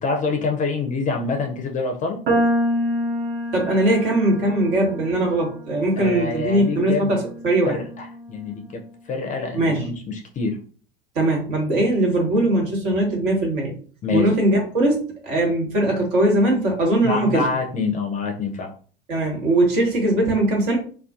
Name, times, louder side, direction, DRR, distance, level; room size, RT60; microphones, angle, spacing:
voice 1, 0.0-2.2 6.0-7.2 7.6-8.8 9.1-10.6 14.0-14.3 17.0-18.7, left 4 dB, 25° left, 3 dB, 0.5 m, -26 dB
sound 1, 2.3-8.6, equal, 35° right, 0.7 m, -28 dB
voice 2, 3.5-7.8 9.5-9.9 11.1-13.8 14.1-17.4 19.1-20.8, right 1 dB, 55° right, -1 dB, 1.2 m, -20 dB
2.3 x 2.3 x 2.4 m, 0.42 s
figure-of-eight pair, 75°, 30 cm